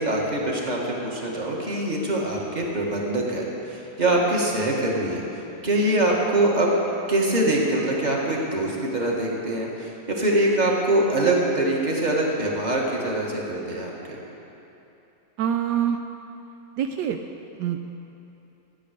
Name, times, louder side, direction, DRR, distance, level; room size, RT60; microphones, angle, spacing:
voice 1, 0.0-5.2 5.6-6.8 7.1-14.2, right 1 dB, 25° right, -2 dB, 1.8 m, -24 dB
voice 2, 15.4-16.0 16.8-17.2 17.6-17.9, right 9 dB, 80° right, 5 dB, 1.2 m, -25 dB
14.0 x 9.1 x 6.5 m, 2.9 s
omnidirectional pair, 1.9 m